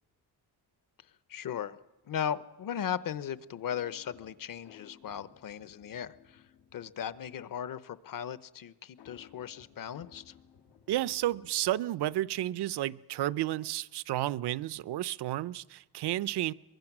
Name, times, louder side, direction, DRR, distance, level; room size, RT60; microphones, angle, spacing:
voice 1, 1.3-1.8 2.1-6.4 6.7-10.3, left 9 dB, 55° left, 15 dB, 0.9 m, -37 dB
sound 1, 3.7-7.4 9.0-12.6, left 10 dB, 85° left, 1.8 m, -59 dB
voice 2, 10.9-16.5, right 14 dB, 80° right, 19 dB, 0.7 m, -32 dB
23.5 x 22.0 x 6.1 m, 1.2 s
cardioid pair, 120°, 40 cm